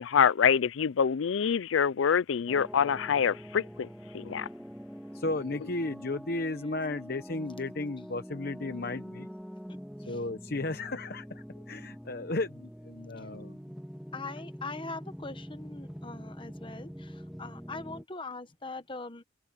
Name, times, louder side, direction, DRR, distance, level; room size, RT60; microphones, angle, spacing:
voice 1, 0.0-3.9 4.1-4.5, left 7 dB, 75° left, 0.4 m, -26 dB
sound 1, 2.5-18.0, equal, ahead, 1.7 m, -45 dB
voice 2, 5.1-9.3 10.1-13.6, left 2 dB, 50° left, 0.9 m, -34 dB
voice 3, 14.1-19.2, left 3 dB, 25° left, 1.1 m, -42 dB
head